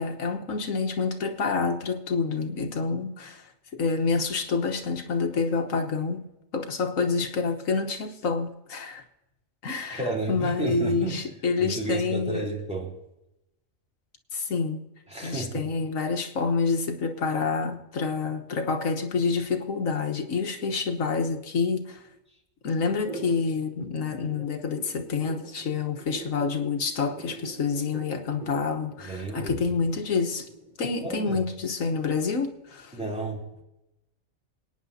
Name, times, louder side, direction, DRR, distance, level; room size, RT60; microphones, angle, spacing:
voice 1, 0.0-6.3 6.5-9.0 9.6-10.0 10.3-12.4 14.3-14.8 15.2-22.0 22.6-30.5 30.8-33.0, left 4 dB, 80° left, 1.6 m, -28 dB
voice 2, 9.9-11.3 11.6-13.0 15.1-15.7 28.4-28.5 29.0-29.7 31.0-31.4 32.9-33.6, right 2 dB, 5° right, 3.1 m, -32 dB
sound 1, 22.9-30.7, right 2 dB, 35° right, 5.2 m, -42 dB
26.0 x 9.5 x 2.8 m
omnidirectional pair, 1.4 m